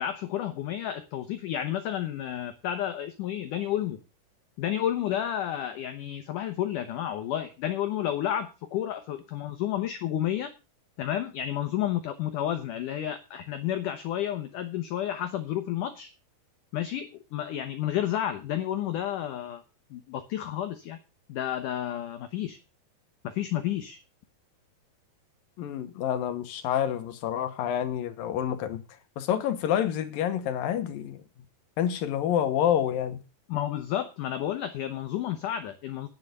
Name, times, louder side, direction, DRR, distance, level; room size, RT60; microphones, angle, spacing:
voice 1, 0.0-4.0 4.6-10.5 11.0-16.1 16.7-19.6 19.9-21.0 21.3-22.6 23.2-24.0 33.5-36.1, left 11 dB, 90° left, 1.8 m, -31 dB
voice 2, 25.6-28.8 29.2-31.2 31.8-33.2, left 10 dB, 70° left, 2.3 m, -28 dB
9.9 x 7.6 x 6.7 m
omnidirectional pair, 4.9 m